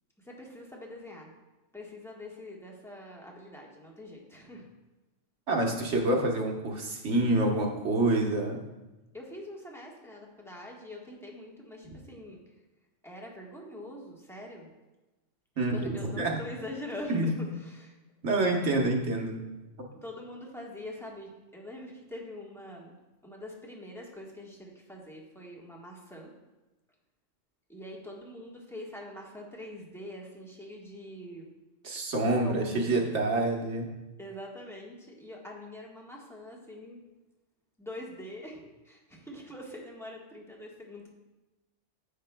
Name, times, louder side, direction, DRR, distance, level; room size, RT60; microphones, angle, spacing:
voice 1, 0.2-1.3 1.7-4.7 9.1-12.4 13.0-14.7 15.6-17.9 20.0-23.0 23.2-26.3 27.7-31.5 32.4-33.2 34.2-37.1 37.8-41.1, left 1 dB, ahead, -2 dB, 1.3 m, -44 dB
voice 2, 5.5-8.6 15.6-16.3 17.1-17.3 18.2-19.3 31.8-33.9, right 2 dB, 65° right, 0 dB, 1.4 m, -27 dB
10.0 x 7.6 x 2.2 m, 1.1 s
omnidirectional pair, 1.3 m